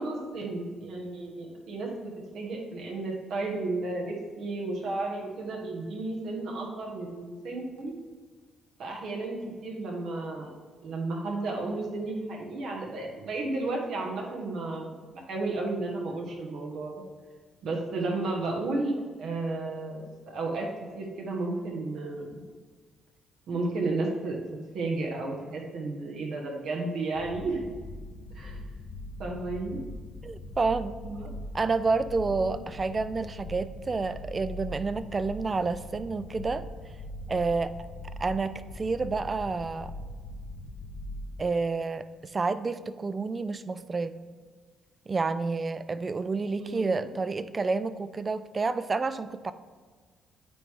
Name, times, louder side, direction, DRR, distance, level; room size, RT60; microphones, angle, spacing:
voice 1, 0.0-7.9 8.8-10.5 10.8-16.9 17.6-20.7 20.9-22.4 23.5-24.4 24.7-27.6 28.3-28.6 29.2-29.8 31.0-31.3 32.2-32.6 46.6-47.1, right 2 dB, 75° right, 0 dB, 1.3 m, -33 dB
sound 1, 27.1-41.5, left 1 dB, 60° left, 0.5 m, -41 dB
voice 2, 30.2-31.0 31.5-36.6 37.3-37.7 38.2-39.9 41.4-44.2 45.1-49.5, right 4 dB, 30° right, 13 dB, 0.3 m, -29 dB
9.0 x 3.2 x 3.6 m, 1.5 s
cardioid pair, 90°, 0 cm